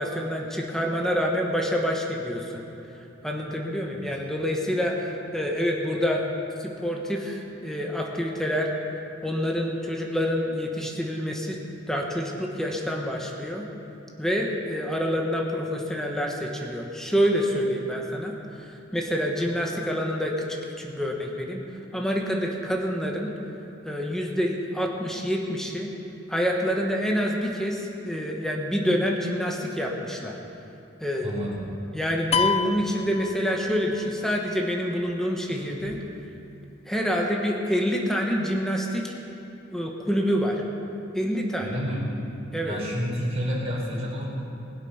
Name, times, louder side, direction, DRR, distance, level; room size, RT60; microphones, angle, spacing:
voice 1, 0.0-2.6 3.2-6.2 6.6-8.7 9.2-11.6 11.9-13.7 14.2-18.7 18.9-21.6 21.9-23.3 23.8-25.9 26.3-30.4 31.0-31.3 31.9-36.0 36.9-39.1 39.7-40.6 41.1-41.8 42.5-42.8, equal, ahead, 0 dB, 1.3 m, -27 dB
voice 2, 31.2-31.6 41.6-42.0 42.6-44.2, equal, 35° right, -5 dB, 4.1 m, -30 dB
sound 1, 32.3-34.0, left 5 dB, 30° left, 0.3 m, -27 dB
19.5 x 8.3 x 5.7 m, 2.7 s
head